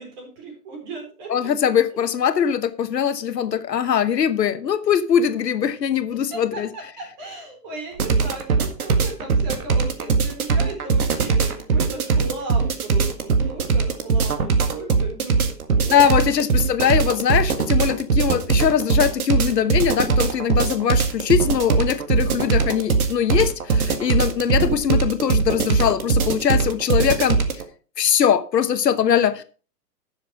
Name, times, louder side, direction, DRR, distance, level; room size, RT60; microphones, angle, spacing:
voice 1, 0.0-1.5 6.3-16.3, right 3 dB, 25° right, 4.0 m, -36 dB
voice 2, 1.3-6.7 15.9-27.4 28.0-29.4, left 8 dB, 85° left, 1.3 m, -21 dB
sound 1, 8.0-27.6, right 4 dB, 60° right, 1.9 m, -20 dB
11.5 x 7.2 x 4.7 m
hypercardioid pair, 165°, 48 cm